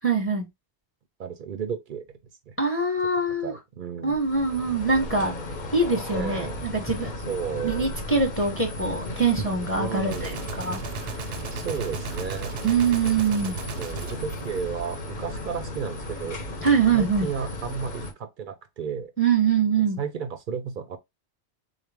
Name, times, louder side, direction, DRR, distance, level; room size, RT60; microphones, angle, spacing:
voice 1, 0.0-0.5 2.6-3.5 4.0-5.4 5.7-7.1 7.6-10.8 12.6-13.6 16.6-17.3 19.2-20.0, right 4 dB, 15° left, 0.8 m, -23 dB
voice 2, 1.2-2.1 2.5-2.6 3.4-4.2 6.1-6.6 7.3-7.9 9.8-10.3 11.5-12.5 13.4-16.4 16.9-19.1 19.8-21.0, right 7 dB, 60° right, 0.6 m, -33 dB
sound 1, 4.1-18.1, left 1 dB, 45° left, 0.9 m, -35 dB
Gunshot gunfire, 10.1-15.3, right 6 dB, 85° right, 0.9 m, -37 dB
3.8 x 2.4 x 3.3 m
omnidirectional pair, 1.1 m